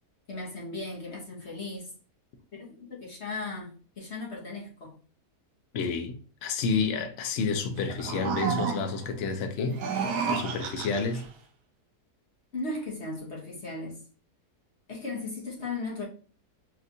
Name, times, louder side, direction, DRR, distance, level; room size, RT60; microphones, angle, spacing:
voice 1, 0.3-1.9 2.5-5.0 12.5-14.0 14.9-16.1, left 3 dB, 45° left, 1.3 m, -37 dB
voice 2, 5.7-9.8 10.3-11.2, left 5 dB, 60° left, 0.8 m, -30 dB
sound 1, 7.8-9.1 9.7-11.3, right 6 dB, 80° right, 1.2 m, -31 dB
4.2 x 2.5 x 2.6 m
omnidirectional pair, 1.7 m